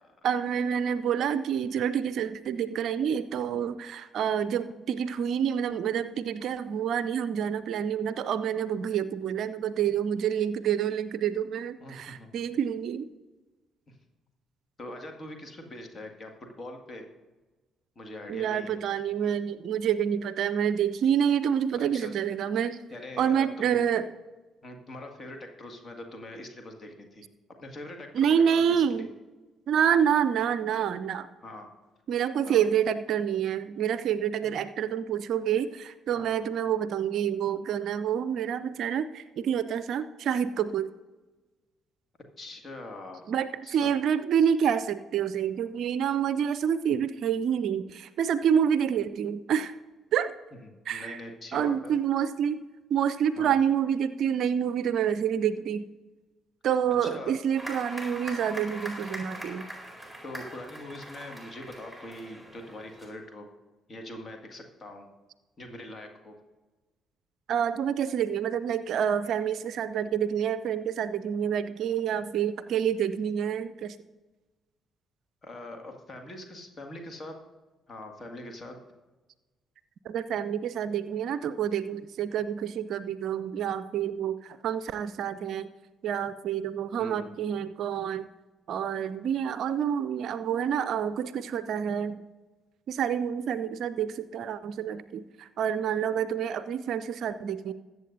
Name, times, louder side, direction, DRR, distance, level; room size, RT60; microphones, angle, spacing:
voice 1, 0.2-13.1 18.3-22.8 23.2-24.1 28.1-29.1 29.7-31.3 32.1-40.9 43.3-49.7 50.1-50.3 50.9-51.2 51.5-55.9 56.6-59.7 67.5-74.0 80.1-85.7 86.0-88.3 88.7-92.2 92.9-97.7, right 8 dB, 55° right, 14 dB, 0.4 m, -28 dB
voice 2, 11.8-12.3 13.9-14.0 14.8-17.1 18.0-18.8 21.7-22.1 22.9-23.8 24.6-27.2 27.6-29.1 31.4-31.7 32.4-32.6 34.4-34.6 36.1-36.3 42.4-43.2 43.6-43.9 50.6-51.9 53.4-53.5 57.0-57.4 60.2-63.5 63.9-65.1 65.6-66.4 75.4-77.4 77.9-78.8 87.0-87.3, left 1 dB, 35° left, 4 dB, 2.0 m, -43 dB
sound 1, 57.6-63.1, right 1 dB, 10° left, 4.1 m, -42 dB
21.0 x 8.1 x 2.7 m, 1.2 s
figure-of-eight pair, 40°, 0 cm